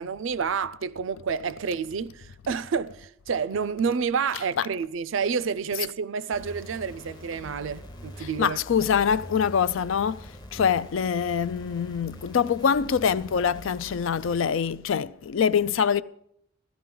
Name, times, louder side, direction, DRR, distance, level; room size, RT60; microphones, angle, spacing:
voice 1, 0.0-8.9, right 6 dB, 65° right, 0.4 m, -29 dB
sound 1, 6.3-14.4, equal, 20° left, 0.8 m, -44 dB
voice 2, 8.4-10.3 10.5-16.0, left 7 dB, 65° left, 0.4 m, -24 dB
16.5 x 13.0 x 3.8 m
head